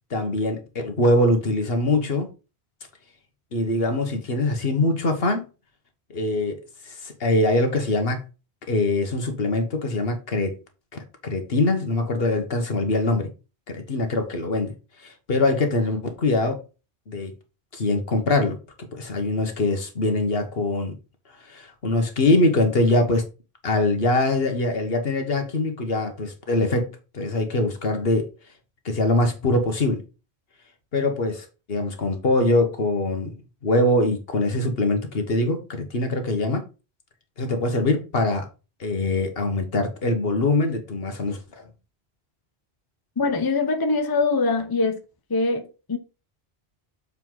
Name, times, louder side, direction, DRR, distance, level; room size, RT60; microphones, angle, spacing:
voice 1, 0.1-2.3 3.5-5.4 6.1-8.2 8.7-10.6 11.2-13.3 13.7-14.7 15.0-16.6 17.1-17.3 17.7-20.9 21.5-23.2 23.6-28.3 28.8-30.0 30.9-33.4 33.6-36.6 37.4-38.5 38.8-41.6, left 2 dB, 65° left, 1.5 m, -23 dB
voice 2, 43.2-45.0 45.3-46.0, left 3 dB, 25° left, 0.8 m, -23 dB
6.8 x 4.7 x 3.9 m
omnidirectional pair, 1.1 m